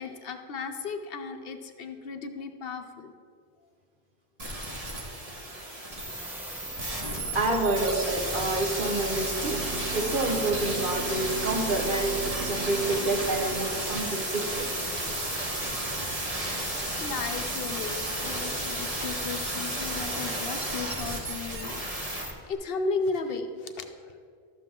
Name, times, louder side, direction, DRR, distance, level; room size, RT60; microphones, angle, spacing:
voice 1, 0.0-3.1 16.4-21.8 22.1-23.9, left 4 dB, 65° left, 6 dB, 0.8 m, -35 dB
sound 1, 4.4-22.2 22.5-22.6, right 1 dB, 35° right, 1.5 m, -33 dB
sound 2, 6.0-22.3, equal, 5° right, 0.3 m, -42 dB
voice 2, 7.3-9.6 9.9-14.7, right 2 dB, 55° right, 0 dB, 1.3 m, -28 dB
sound 3, 9.4-14.4 15.0-15.1 15.4-15.6 16.0-16.3, right 5 dB, 75° right, 0.8 m, -41 dB
12.5 x 7.6 x 3.7 m, 2.3 s
omnidirectional pair, 1.1 m